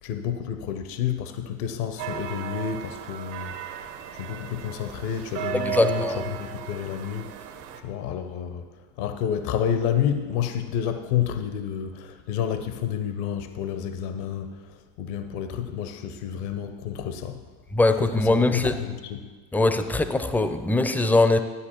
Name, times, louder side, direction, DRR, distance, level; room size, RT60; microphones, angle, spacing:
voice 1, 0.0-7.3 7.8-8.7 9.0-14.6 15.0-17.4 18.0-19.2, left 9 dB, 65° left, 9 dB, 0.9 m, -30 dB
sound 1, 2.0-7.8, right 10 dB, 75° right, 1.0 m, -35 dB
voice 2, 5.5-6.2 17.7-18.7 19.5-21.4, left 2 dB, 5° left, 10 dB, 0.4 m, -21 dB
13.0 x 9.5 x 3.0 m, 1.4 s
hypercardioid pair, 75°, 47 cm